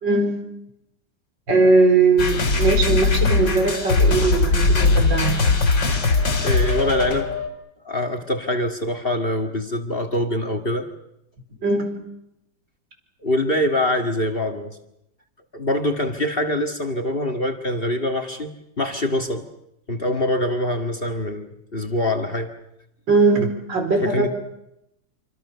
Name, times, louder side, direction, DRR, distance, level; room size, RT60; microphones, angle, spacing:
voice 1, 0.0-0.4 1.5-5.4 11.6-11.9 23.1-24.3, right 3 dB, 65° right, 4 dB, 5.3 m, -19 dB
sound 1, 2.2-7.5, left 3 dB, 65° left, 3.8 m, -20 dB
voice 2, 6.4-7.3 7.8-10.9 13.2-14.7 15.5-19.5 19.9-22.5 24.0-24.3, left 1 dB, 30° left, 8 dB, 2.0 m, -24 dB
27.5 x 25.0 x 6.9 m, 0.83 s
omnidirectional pair, 2.1 m